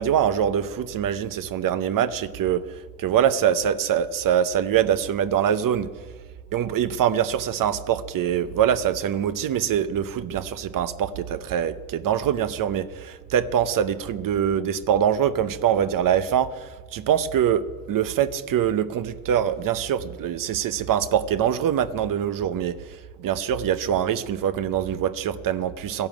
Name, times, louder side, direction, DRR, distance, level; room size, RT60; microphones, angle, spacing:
voice 1, 0.0-2.6 3.0-5.9 6.5-26.1, right 9 dB, 75° right, 13 dB, 0.8 m, -24 dB
13.5 x 11.5 x 9.0 m, 1.4 s
cardioid pair, 120°, 33 cm